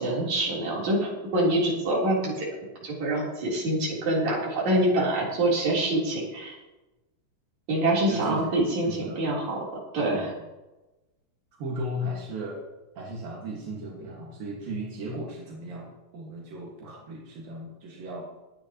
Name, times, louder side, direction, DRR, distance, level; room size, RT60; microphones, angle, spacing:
voice 1, 0.0-2.5 2.8-6.5 7.7-9.6 9.9-10.3, right 1 dB, 55° right, -5 dB, 5.0 m, -25 dB
voice 2, 8.1-8.4 8.8-9.3 10.1-10.2 11.6-12.6 13.0-18.3, equal, 80° right, -3 dB, 3.6 m, -36 dB
22.5 x 9.5 x 3.0 m, 1.1 s
omnidirectional pair, 3.9 m